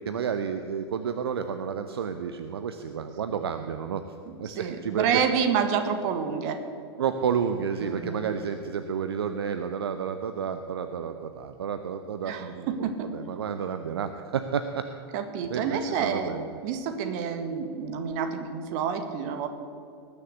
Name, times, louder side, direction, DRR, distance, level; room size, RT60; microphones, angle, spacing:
voice 1, 0.1-4.0 4.4-5.2 7.0-14.9 15.5-16.5, right 7 dB, 65° right, 9 dB, 0.7 m, -31 dB
voice 2, 4.3-6.6 7.8-8.3 12.2-13.1 15.1-16.3 16.6-19.5, right 7 dB, 45° right, 8 dB, 1.6 m, -29 dB
19.5 x 6.9 x 8.4 m, 2.6 s
figure-of-eight pair, 95°, 14 cm